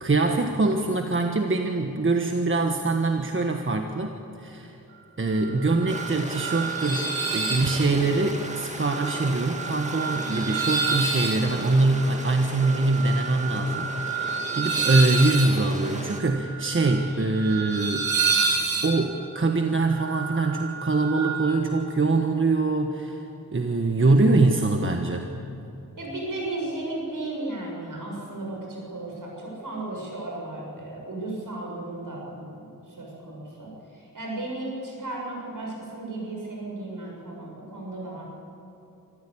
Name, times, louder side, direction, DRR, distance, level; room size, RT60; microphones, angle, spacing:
voice 1, 0.0-4.8 5.2-18.1 18.8-23.2 23.5-25.2, right 3 dB, 35° right, 4 dB, 1.4 m, -23 dB
sound 1, 5.4-21.5, right 4 dB, 90° right, 3.0 m, -30 dB
Stream, 5.9-16.2, right 1 dB, 20° right, 2.2 m, -37 dB
voice 2, 26.0-38.3, right 2 dB, 65° right, -2 dB, 7.5 m, -35 dB
25.5 x 15.0 x 8.6 m, 2.9 s
wide cardioid pair, 80°, 34 cm